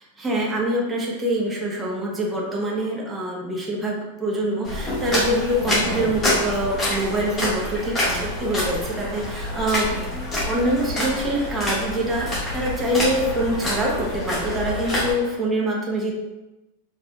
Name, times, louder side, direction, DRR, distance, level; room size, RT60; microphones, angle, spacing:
voice 1, 0.2-10.1 10.5-16.1, right 1 dB, 10° right, -3 dB, 0.7 m, -25 dB
sound 1, 4.6-15.1, left 1 dB, 20° left, 1.2 m, -27 dB
4.2 x 3.3 x 2.3 m, 1.0 s
supercardioid pair, 150°, 0 cm